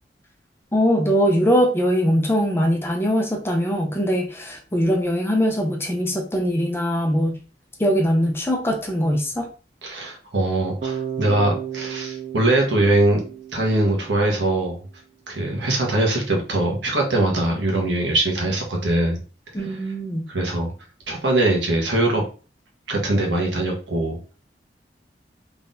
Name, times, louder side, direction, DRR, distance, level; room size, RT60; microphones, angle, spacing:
voice 1, 0.7-7.4 7.8-9.5 19.5-20.3, equal, 15° left, 0.7 m, -21 dB
voice 2, 9.8-13.2 13.5-14.8 15.3-19.2 20.3-20.7 21.1-22.2 22.9-24.2, right 2 dB, 90° right, 1.3 m, -22 dB
Bass guitar, 10.8-14.8, right 8 dB, 35° right, 0.3 m, -33 dB
3.8 x 3.4 x 2.6 m
head